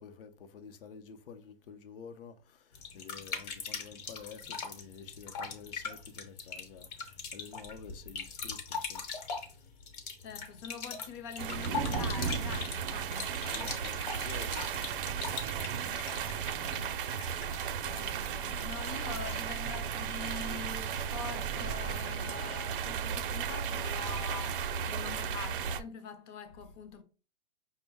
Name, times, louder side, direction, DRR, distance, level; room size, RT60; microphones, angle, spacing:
voice 1, 0.0-9.0 13.4-14.9, left 6 dB, 65° left, 0.7 m, -50 dB
sound 1, 2.7-19.6, left 5 dB, 40° left, 1.0 m, -41 dB
voice 2, 10.2-13.4 15.7-16.9 17.8-27.0, left 6 dB, 25° left, 0.5 m, -45 dB
sound 2, 11.4-25.8, right 7 dB, 60° right, 0.5 m, -35 dB
5.3 x 2.1 x 3.4 m
hypercardioid pair, 155°, 31 cm